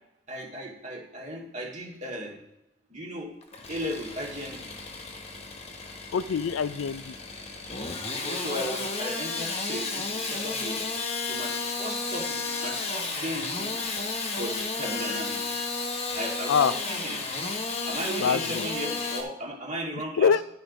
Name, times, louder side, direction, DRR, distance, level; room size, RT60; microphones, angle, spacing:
voice 1, 0.3-2.4 2.9-3.3 3.7-4.8 8.0-10.8 11.2-13.7 14.4-15.4 16.1-17.2 17.8-20.3, equal, 35° right, -1 dB, 2.0 m, -36 dB
Engine starting / Sawing, 3.4-19.2, left 3 dB, 30° left, 1.1 m, -33 dB
voice 2, 6.1-7.1 16.5-16.7 18.2-18.7 20.2-20.4, left 6 dB, 80° left, 16 dB, 0.4 m, -24 dB
sound 1, 12.4-18.2, left 2 dB, 60° right, 3.3 m, -53 dB
11.5 x 4.5 x 5.1 m, 0.90 s
head